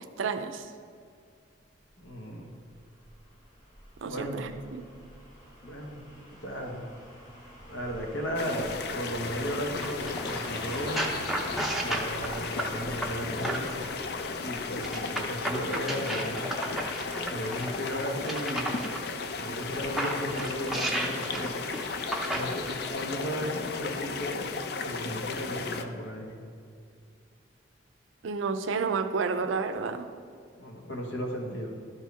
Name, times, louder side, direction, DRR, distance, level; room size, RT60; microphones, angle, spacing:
voice 1, 0.2-0.7 4.0-4.8 28.2-30.1, right 5 dB, 90° right, 9 dB, 0.5 m, -30 dB
voice 2, 2.0-2.5 4.0-4.5 5.6-6.0 6.3-6.9 7.7-11.1 11.8-13.7 14.4-16.6 17.3-18.8 19.3-21.5 22.3-24.5 24.8-26.4 30.6-31.8, equal, 80° left, 1 dB, 1.3 m, -35 dB
sound 1, 2.0-16.9 17.2-17.3, equal, 40° left, 1.9 m, -47 dB
sound 2, 8.3-25.8, left 4 dB, 55° left, 0.4 m, -35 dB
sound 3, 9.8-13.9 14.8-19.0 19.6-23.0 23.8-23.9, right 1 dB, ahead, 0.5 m, -34 dB
12.0 x 4.5 x 3.5 m, 2.2 s
head